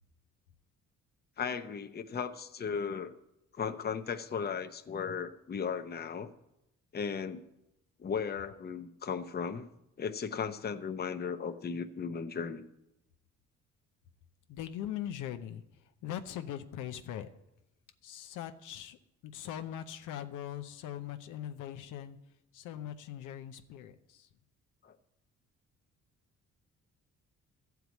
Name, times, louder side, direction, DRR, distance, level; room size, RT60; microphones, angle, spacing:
voice 1, 1.4-3.1 3.5-6.3 6.9-7.4 8.0-9.7 10.0-12.6 24.8-24.9, left 6 dB, 35° left, 9 dB, 0.7 m, -36 dB
voice 2, 14.5-17.3 18.0-19.0 19.2-24.3, left 10 dB, 90° left, 8 dB, 0.7 m, -41 dB
13.0 x 4.7 x 8.2 m, 0.87 s
cardioid pair, 90°, 30 cm